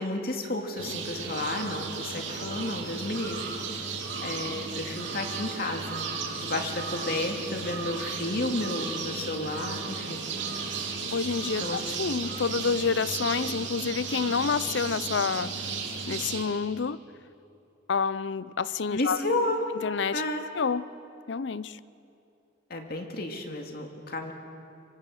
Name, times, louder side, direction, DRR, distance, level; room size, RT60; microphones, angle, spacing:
voice 1, 0.0-6.1 6.4-10.3 11.6-11.8 18.9-19.6 20.1-20.4 22.7-24.3, left 2 dB, 55° left, 3 dB, 2.4 m, -32 dB
sound 1, 0.8-16.4, right 5 dB, 80° right, 3.2 m, -35 dB
voice 2, 11.1-15.7 16.1-17.0 17.9-19.2 19.8-20.2 20.5-20.9 21.3-21.8, left 5 dB, 70° left, 18 dB, 0.6 m, -28 dB
25.0 x 23.5 x 6.5 m, 2.7 s
head